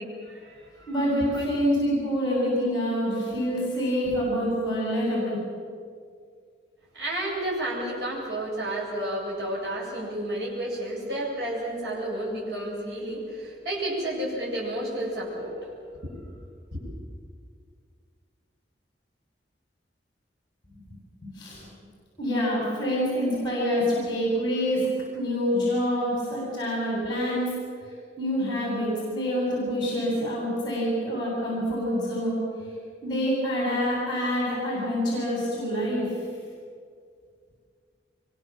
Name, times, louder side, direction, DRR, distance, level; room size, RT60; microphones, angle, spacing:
voice 1, 0.2-1.4 6.9-15.5 16.0-16.1 16.7-16.9, right 1 dB, 70° right, -6 dB, 7.8 m, -31 dB
voice 2, 0.9-5.4 20.9-21.0 21.2-21.6 22.2-24.9 25.1-27.4 28.2-32.4 33.0-36.0, equal, 25° left, -4 dB, 8.0 m, -26 dB
25.0 x 23.5 x 7.5 m, 2.2 s
head